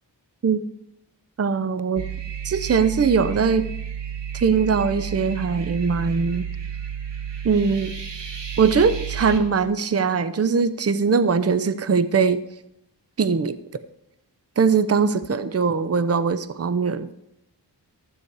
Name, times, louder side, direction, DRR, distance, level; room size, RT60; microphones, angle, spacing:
voice 1, 1.4-2.1 2.4-3.7 4.3-6.5 7.4-7.9 8.6-12.4 13.2-13.6 14.6-17.1, right 5 dB, 35° right, 13 dB, 0.7 m, -21 dB
sound 1, 2.0-9.4, right 8 dB, 75° right, 1.3 m, -32 dB
12.5 x 8.1 x 4.8 m, 0.81 s
cardioid pair, 45°, 43 cm